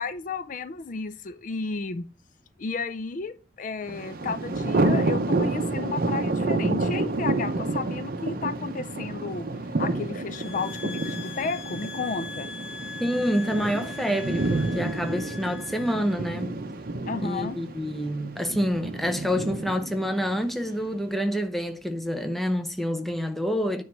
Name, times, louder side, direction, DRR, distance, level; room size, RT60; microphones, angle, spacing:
voice 1, 0.0-2.1 2.6-9.5 9.8-12.5 17.1-17.6, left 4 dB, 45° left, 0.4 m, -33 dB
Thunder, 3.9-20.9, right 2 dB, 50° right, 0.7 m, -29 dB
sound 1, 10.3-16.2, left 5 dB, 90° left, 0.9 m, -41 dB
voice 2, 13.0-16.6 17.2-23.8, equal, ahead, 0.7 m, -27 dB
9.3 x 3.1 x 6.0 m
head